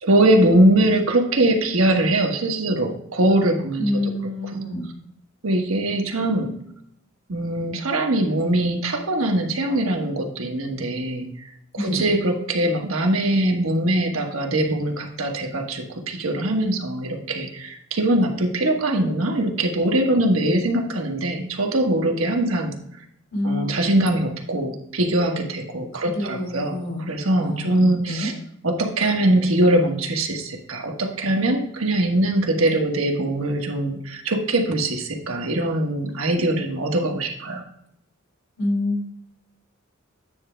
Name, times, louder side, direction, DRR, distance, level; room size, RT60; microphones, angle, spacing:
voice 1, 0.0-4.1 4.5-4.6 5.4-6.5 7.3-11.3 11.8-22.7 23.4-28.3 28.6-37.6, right 1 dB, 90° right, 3 dB, 1.2 m, -22 dB
voice 2, 3.8-4.9 11.7-12.0 23.3-23.7 25.9-27.1 27.4-28.3 38.6-39.1, left 1 dB, 85° left, 0 dB, 3.0 m, -27 dB
9.3 x 3.4 x 4.9 m, 0.74 s
head